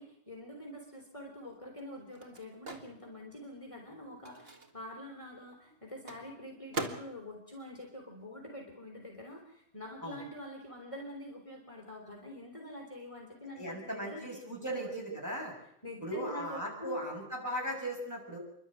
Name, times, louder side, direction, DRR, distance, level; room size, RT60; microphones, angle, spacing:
voice 1, 0.0-15.0 15.8-17.1, left 1 dB, 30° left, 0 dB, 3.4 m, -46 dB
Microwave oven, 0.8-8.9 9.2-11.1, right 2 dB, 60° right, 2.3 m, -46 dB
voice 2, 13.6-15.6 16.0-18.4, right 1 dB, 15° right, -2 dB, 7.4 m, -37 dB
27.0 x 12.0 x 9.2 m, 0.76 s
omnidirectional pair, 1.1 m